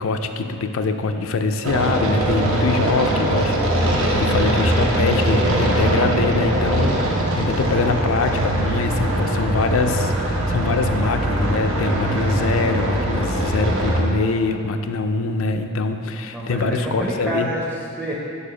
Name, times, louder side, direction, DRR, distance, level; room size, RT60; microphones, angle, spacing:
voice 1, 0.0-17.5, left 3 dB, 75° left, 7 dB, 0.4 m, -24 dB
sound 1, 1.6-14.0, right 1 dB, 75° right, 0.9 m, -21 dB
voice 2, 16.3-18.1, right 1 dB, 10° right, -4 dB, 0.5 m, -28 dB
4.9 x 4.8 x 4.9 m, 2.6 s
head